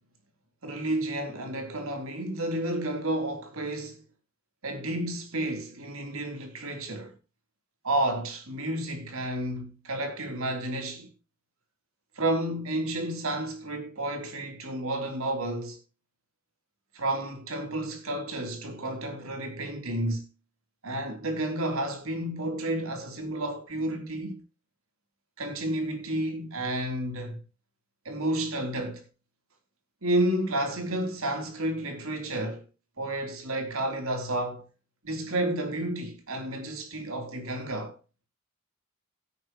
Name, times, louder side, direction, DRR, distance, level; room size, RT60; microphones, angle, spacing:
voice 1, 0.6-4.0 4.6-7.2 7.8-11.1 12.2-15.8 16.9-20.3 20.8-24.4 25.4-27.4 28.1-29.0 30.0-32.6 33.0-34.7 35.0-38.0, right 1 dB, 70° right, 3.4 m, -31 dB
16.0 x 9.9 x 3.0 m
head